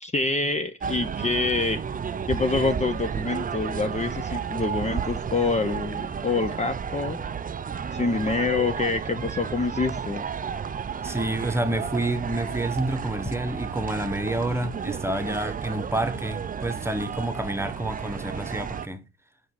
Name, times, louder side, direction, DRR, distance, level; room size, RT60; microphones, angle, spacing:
voice 1, 0.0-1.8 2.3-7.2 7.9-10.2, left 3 dB, 25° left, 0.8 m, -26 dB
sound 1, 0.8-18.9, right 7 dB, 30° right, 0.5 m, -32 dB
voice 2, 11.0-19.1, right 1 dB, 10° right, 1.1 m, -29 dB
5.7 x 5.2 x 6.5 m
cardioid pair, 90°, 30 cm